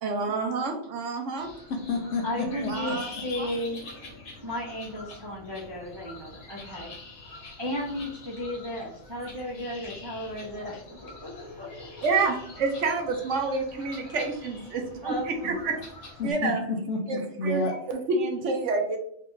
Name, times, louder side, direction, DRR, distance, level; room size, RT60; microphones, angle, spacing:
voice 1, 0.0-1.5 2.7-3.1 3.4-3.5 9.2-9.3 12.0-15.8 16.2-16.6 17.1-17.6 17.9-19.0, right 3 dB, 65° right, 4 dB, 0.9 m, -28 dB
sound 1, 1.4-16.3, left 3 dB, 85° left, 1.6 m, -45 dB
voice 2, 1.7-2.7 10.4-10.8 11.3-12.0 16.2-17.8, left 3 dB, 65° left, 3 dB, 1.0 m, -31 dB
voice 3, 2.2-3.8 4.4-6.9 7.6-11.7 12.0-12.1 13.6-13.9 15.0-15.5, left 1 dB, 30° right, -4 dB, 0.4 m, -34 dB
4.3 x 2.4 x 3.8 m, 0.70 s
omnidirectional pair, 1.4 m